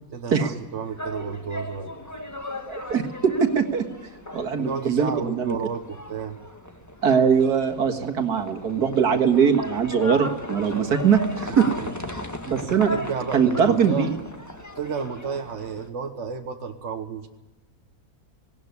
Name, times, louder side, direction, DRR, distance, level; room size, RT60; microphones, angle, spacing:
voice 1, 0.1-2.0 4.6-6.4 7.9-8.2 10.6-10.9 11.6-11.9 12.7-14.1 14.7-17.3, right 6 dB, 50° right, 5 dB, 1.5 m, -32 dB
sound 1, 0.8-15.9, left 1 dB, 10° left, 1.7 m, -37 dB
voice 2, 2.7-3.8 4.3-5.6 7.0-11.7 12.5-12.9 13.3-14.1, right 7 dB, 80° right, 4 dB, 2.2 m, -21 dB
19.0 x 18.0 x 9.6 m, 1.1 s
omnidirectional pair, 1.6 m